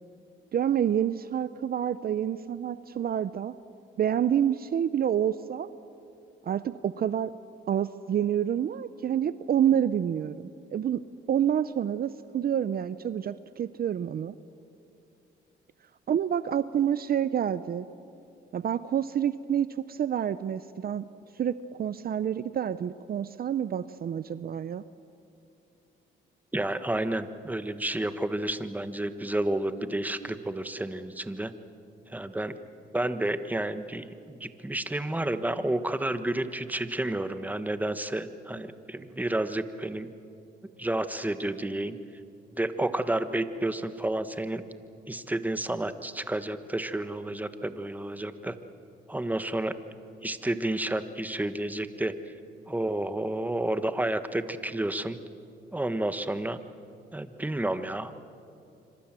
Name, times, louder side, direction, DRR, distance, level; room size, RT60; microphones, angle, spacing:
voice 1, 0.5-3.5 4.0-5.7 6.5-7.3 7.7-11.0 11.3-14.3 16.1-17.9 18.5-21.1 21.4-24.8, right 9 dB, 50° right, 14 dB, 0.7 m, -28 dB
voice 2, 26.5-31.5 32.1-32.5 32.9-40.1 40.8-42.0 42.5-44.6 45.1-48.5 49.1-49.8 50.2-52.3 52.7-55.2 55.7-56.6 57.1-58.1, right 1 dB, 10° right, 10 dB, 1.3 m, -30 dB
26.5 x 25.5 x 7.6 m, 2.7 s
cardioid pair, 90°, 20 cm